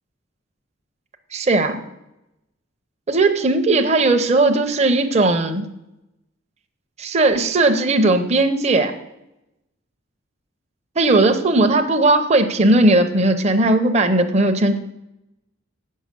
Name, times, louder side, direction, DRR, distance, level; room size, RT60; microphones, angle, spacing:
voice 1, 1.3-1.8 3.1-5.7 7.0-8.9 11.0-14.8, right 2 dB, 30° right, 6 dB, 0.7 m, -17 dB
8.6 x 6.5 x 6.7 m, 0.89 s
head